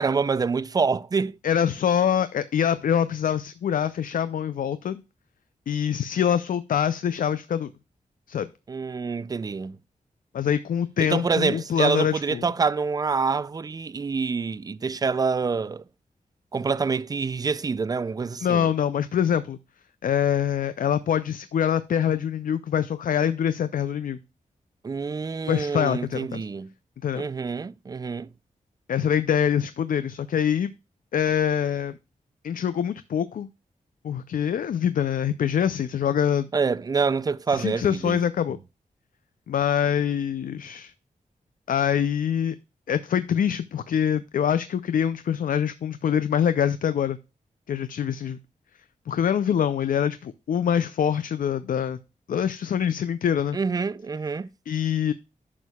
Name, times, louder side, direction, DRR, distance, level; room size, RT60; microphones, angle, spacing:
voice 1, 0.0-1.4 8.7-9.8 11.0-15.8 16.5-18.7 24.8-26.7 27.2-28.3 36.5-38.2 53.5-54.5, right 5 dB, 25° right, 0.3 m, -26 dB
voice 2, 1.4-5.0 5.7-7.7 8.3-8.5 10.3-12.5 18.4-19.6 20.0-24.2 25.5-26.5 27.0-27.2 28.9-30.7 31.1-32.0 32.4-33.5 34.0-36.5 37.5-38.6 39.5-40.9 41.7-42.6 42.9-47.2 47.7-48.4 49.1-52.0 52.3-53.6 54.7-55.1, left 8 dB, 75° left, 0.4 m, -24 dB
11.0 x 6.4 x 2.3 m
wide cardioid pair, 115°, 14 cm